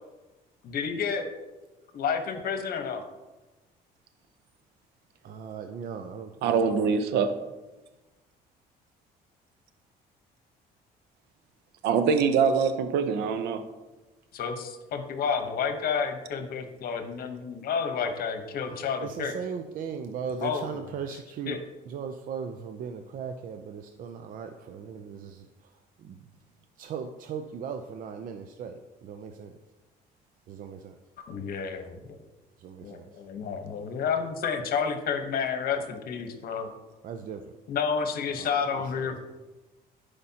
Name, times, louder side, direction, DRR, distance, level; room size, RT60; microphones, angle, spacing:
voice 1, 0.6-1.3 1.9-3.0 14.3-19.3 20.4-21.2 21.5-21.6 31.3-32.0 32.8-36.7 37.7-39.2, left 6 dB, 60° left, 6 dB, 1.0 m, -30 dB
voice 2, 5.2-6.8 19.0-21.6 21.9-25.5 26.0-26.2 26.8-29.5 30.5-31.0 32.6-33.1 37.0-37.4 38.4-39.2, right 6 dB, 55° right, 6 dB, 0.5 m, -38 dB
voice 3, 6.4-7.4 11.8-13.6, right 6 dB, 85° right, 9 dB, 0.7 m, -24 dB
11.0 x 5.1 x 2.8 m, 1.1 s
cardioid pair, 110°, 17 cm